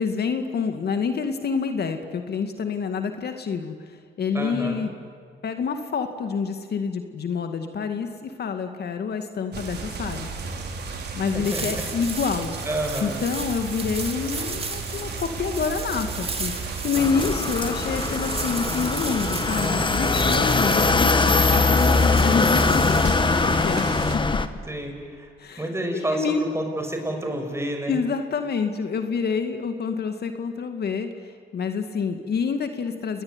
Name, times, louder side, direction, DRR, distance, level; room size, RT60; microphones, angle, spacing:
voice 1, 0.0-4.9 5.4-10.3 11.2-12.6 13.0-23.9 25.4-26.4 27.9-31.1 31.5-33.2, left 5 dB, 55° left, 7 dB, 2.2 m, -27 dB
voice 2, 4.3-4.9 11.3-11.8 12.6-13.2 24.7-25.3 25.6-28.0, right 1 dB, 15° right, 4 dB, 6.3 m, -29 dB
sound 1, 9.5-24.1, right 4 dB, 55° right, 4.5 m, -33 dB
sound 2, 11.4-23.1, right 4 dB, 30° right, 3.1 m, -35 dB
sound 3, 17.0-24.5, left 3 dB, 25° left, 1.5 m, -22 dB
29.5 x 20.5 x 9.8 m, 2.1 s
cardioid pair, 90°, 20 cm